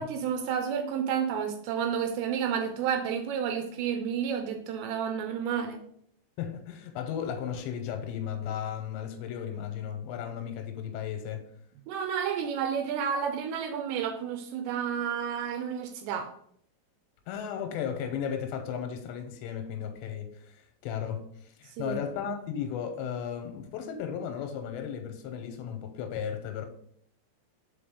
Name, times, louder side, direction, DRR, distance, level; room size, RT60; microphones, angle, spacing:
voice 1, 0.0-5.8 11.9-16.3 21.8-22.0 22.3-22.4, right 7 dB, 85° right, 2.7 m, -31 dB
voice 2, 6.4-11.5 17.3-26.7, left 8 dB, 90° left, 2.8 m, -35 dB
5.4 x 5.1 x 3.5 m
omnidirectional pair, 5.0 m